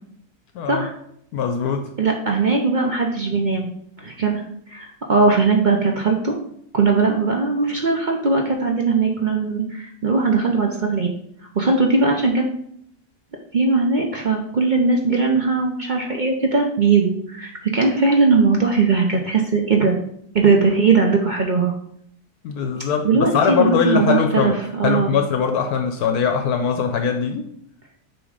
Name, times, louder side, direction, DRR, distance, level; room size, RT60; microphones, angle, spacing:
voice 1, 0.5-0.9 1.3-1.9 22.4-27.4, left 6 dB, 75° left, 5 dB, 1.1 m, -21 dB
voice 2, 2.0-3.7 4.0-4.4 4.7-6.3 6.7-11.1 11.5-12.5 13.5-20.0 20.3-21.7 22.7-25.1, right 4 dB, 55° right, 1 dB, 0.5 m, -19 dB
7.0 x 3.1 x 4.9 m, 0.70 s
omnidirectional pair, 1.7 m